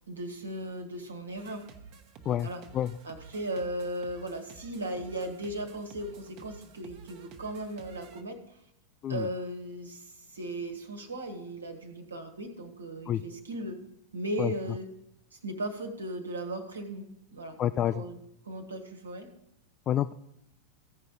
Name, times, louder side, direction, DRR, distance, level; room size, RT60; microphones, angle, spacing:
voice 1, 0.1-1.6 2.4-2.6 3.0-8.6 9.1-13.8 14.1-14.9 15.3-17.6 17.8-18.2 18.4-19.3, right 1 dB, 75° right, 5 dB, 1.5 m, -37 dB
sound 1, 1.4-8.2, right 5 dB, 45° right, 1.1 m, -51 dB
voice 2, 17.6-18.0 19.9-20.1, left 11 dB, 30° left, 11 dB, 0.3 m, -28 dB
15.0 x 5.0 x 5.4 m, 0.79 s
figure-of-eight pair, 90°, 0 cm